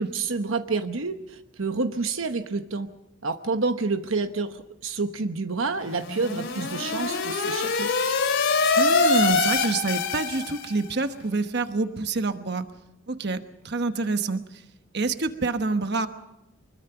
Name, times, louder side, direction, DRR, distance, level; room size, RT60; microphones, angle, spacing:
voice 1, 0.0-2.9 3.2-7.9, right 4 dB, 75° right, 8 dB, 1.0 m, -28 dB
sound 1, 5.9-10.9, left 4 dB, 60° left, 2.9 m, -24 dB
voice 2, 8.8-12.6 13.1-13.4 13.6-14.4 14.9-16.1, right 3 dB, 55° right, 8 dB, 1.2 m, -26 dB
24.0 x 21.5 x 5.9 m, 0.92 s
head